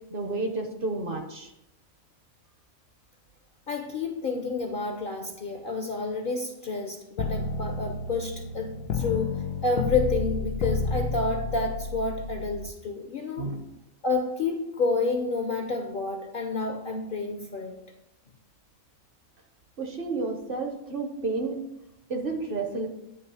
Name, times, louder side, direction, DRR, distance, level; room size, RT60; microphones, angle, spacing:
voice 1, 0.1-1.5 13.4-13.6 19.8-21.6 22.1-22.9, right 3 dB, 50° right, 3 dB, 0.9 m, -31 dB
voice 2, 3.7-13.5 14.0-17.8, left 3 dB, 55° left, 4 dB, 0.7 m, -29 dB
sound 1, 7.2-12.7, left 4 dB, 80° left, 1.0 m, -31 dB
9.4 x 3.1 x 5.4 m, 0.89 s
omnidirectional pair, 1.4 m